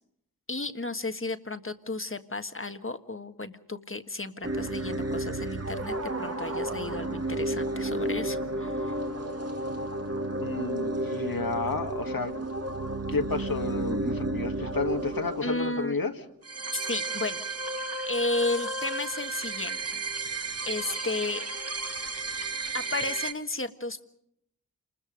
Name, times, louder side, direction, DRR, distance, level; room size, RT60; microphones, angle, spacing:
voice 1, 0.5-8.9 15.4-16.0 16.7-17.4 18.1-20.0 20.7-21.4 22.7-24.1, left 2 dB, 35° left, 9 dB, 1.5 m, -33 dB
sound 1, 4.4-23.3, right 2 dB, 40° right, 1.8 m, -32 dB
voice 2, 10.4-12.3 13.1-16.1, left 3 dB, 65° left, 6 dB, 1.7 m, -31 dB
28.5 x 21.0 x 5.2 m, 0.74 s
wide cardioid pair, 45°, 37 cm